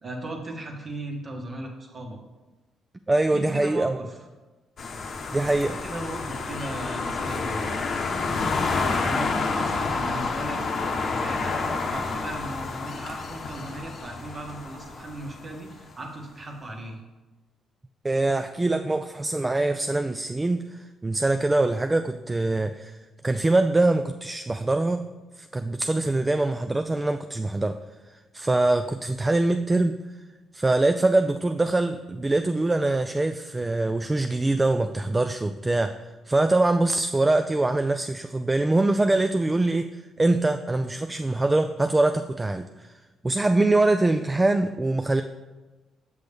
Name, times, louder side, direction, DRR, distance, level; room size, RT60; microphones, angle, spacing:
voice 1, 0.0-2.2 3.3-4.2 5.6-7.9 8.7-17.0, right 1 dB, 40° right, 1 dB, 1.3 m, -37 dB
voice 2, 3.1-4.0 5.3-5.8 18.0-23.0 23.2-25.0 25.4-27.8 28.3-30.0 30.5-35.9 36.3-39.9 40.2-42.9 43.2-45.2, right 2 dB, 20° right, 8 dB, 0.3 m, -23 dB
sound 1, 4.8-15.6, left 4 dB, 55° left, 0.8 m, -29 dB
6.9 x 6.0 x 3.4 m, 1.2 s
cardioid pair, 75°, 0 cm